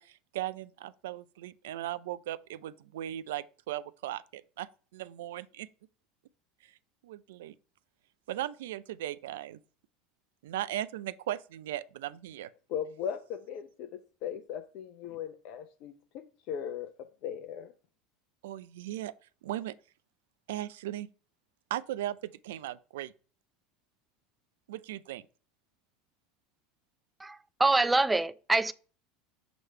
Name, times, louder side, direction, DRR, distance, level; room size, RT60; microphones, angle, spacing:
voice 1, 0.0-5.7 7.0-7.5 8.3-9.6 10.4-12.5 18.4-19.1 19.4-19.7 20.5-21.1 21.7-23.1 24.7-25.2, right 13 dB, 70° right, 0.4 m, -37 dB
voice 2, 12.7-16.9 17.2-17.7, left 8 dB, 55° left, 0.6 m, -38 dB
voice 3, 27.2-28.7, right 2 dB, 10° right, 0.5 m, -25 dB
6.1 x 3.1 x 5.5 m
hypercardioid pair, 75°, 0 cm